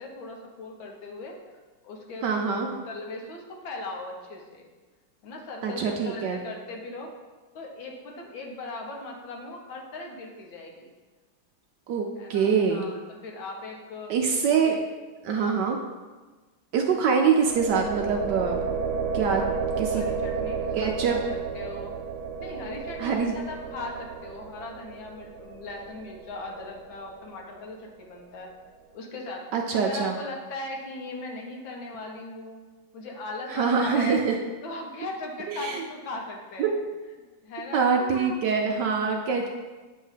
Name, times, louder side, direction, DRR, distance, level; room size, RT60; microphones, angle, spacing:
voice 1, 0.0-1.4 1.8-2.3 2.9-4.7 5.2-7.1 7.6-10.9 12.2-14.1 14.6-14.8 15.3-15.6 19.1-21.2 21.5-21.9 22.4-28.5 28.9-32.6 32.9-34.2 34.6-36.7 37.4-37.9 38.1-38.4 39.3-39.5, left 2 dB, 70° left, 0 dB, 1.7 m, -38 dB
voice 2, 2.2-2.8 5.6-6.4 11.9-12.8 14.1-14.7 15.2-15.8 16.7-18.6 19.1-19.4 19.8-20.0 20.7-21.2 23.0-23.3 29.5-30.1 33.5-34.3 35.5-35.8 36.6-36.7 37.7-39.5, right 6 dB, 70° right, 2 dB, 1.1 m, -24 dB
sound 1, 17.4-27.2, right 5 dB, 85° right, 1.5 m, -32 dB
9.1 x 3.2 x 5.6 m, 1.3 s
omnidirectional pair, 2.3 m